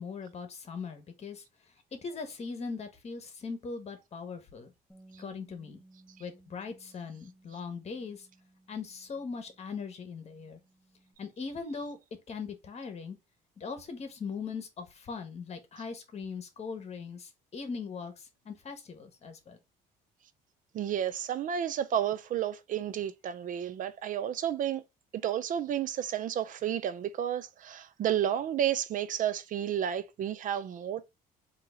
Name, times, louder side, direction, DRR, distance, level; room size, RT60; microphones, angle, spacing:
voice 1, 0.0-1.4 1.9-4.7 5.2-5.8 6.2-8.3 8.7-10.6 11.2-12.0 12.3-13.2 13.6-19.6, left 5 dB, 40° left, 1.3 m, -40 dB
Bass guitar, 4.9-11.1, right 2 dB, 5° left, 1.3 m, -60 dB
voice 2, 20.7-24.8 25.2-31.1, right 10 dB, 50° right, 0.5 m, -31 dB
3.8 x 2.9 x 4.7 m
cardioid pair, 110°, 17 cm